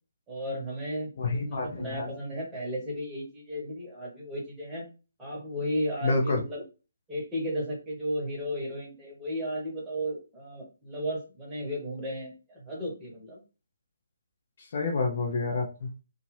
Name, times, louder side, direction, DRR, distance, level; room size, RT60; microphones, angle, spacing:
voice 1, 0.3-1.1 1.4-4.9 5.2-6.6 7.1-13.4, equal, 10° right, -4 dB, 1.2 m, -34 dB
voice 2, 1.2-2.1 6.0-6.4 14.7-15.9, left 3 dB, 45° left, -1 dB, 0.7 m, -28 dB
2.7 x 2.4 x 3.2 m, 0.32 s
figure-of-eight pair, 140°, 0 cm